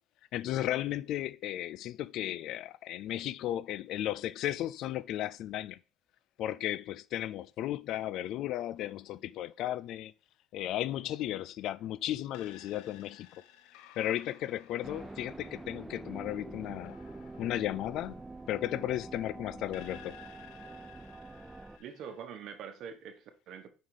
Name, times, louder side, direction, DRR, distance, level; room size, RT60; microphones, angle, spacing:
voice 1, 0.3-5.8 6.4-10.1 10.5-13.3 14.0-17.0 17.4-18.2 18.5-20.1, left 13 dB, 60° left, 0.4 m, -35 dB
sound 1, 12.3-19.2 19.7-22.3, left 11 dB, 80° left, 0.8 m, -57 dB
sound 2, 14.8-21.8, right 2 dB, 10° right, 0.4 m, -46 dB
voice 2, 21.8-23.7, right 7 dB, 60° right, 1.3 m, -44 dB
5.7 x 5.5 x 4.9 m
cardioid pair, 120°, 0 cm